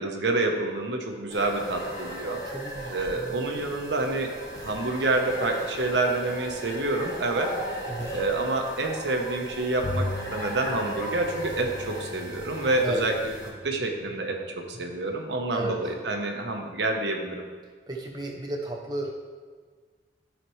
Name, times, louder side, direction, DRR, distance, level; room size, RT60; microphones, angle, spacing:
voice 1, 0.0-2.4 2.9-4.3 4.6-7.5 8.1-13.1 13.6-17.4, right 2 dB, 75° right, 3 dB, 0.9 m, -28 dB
sound 1, 1.3-13.5, right 1 dB, 20° left, 1.2 m, -37 dB
voice 2, 2.5-3.4 7.9-8.1 12.8-13.0 15.5-15.8 17.9-19.2, right 2 dB, 20° right, 0 dB, 0.6 m, -33 dB
Bowed string instrument, 9.8-15.5, left 1 dB, 60° left, 0.7 m, -39 dB
12.0 x 4.2 x 3.1 m, 1.5 s
head